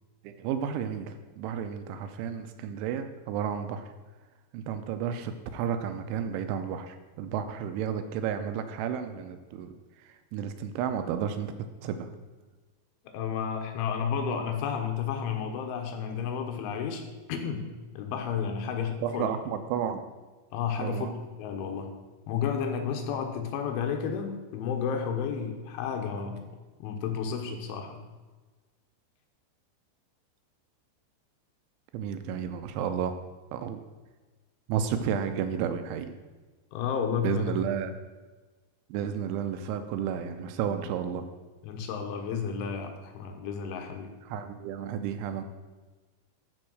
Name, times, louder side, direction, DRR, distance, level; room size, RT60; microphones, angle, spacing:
voice 1, 0.2-3.9 4.5-9.7 10.3-11.5 11.8-12.1 19.0-20.0 20.8-21.1 31.9-33.2 33.5-33.8 34.7-36.2 37.2-37.9 38.9-41.2 44.3-45.4, right 8 dB, 80° right, 8 dB, 2.9 m, -32 dB
voice 2, 13.1-17.0 17.3-19.3 20.5-21.1 21.4-21.9 22.3-26.4 26.8-28.0 36.7-37.5 41.6-44.1, left 6 dB, 75° left, 4 dB, 3.4 m, -32 dB
13.0 x 5.4 x 6.2 m, 1.3 s
omnidirectional pair, 5.7 m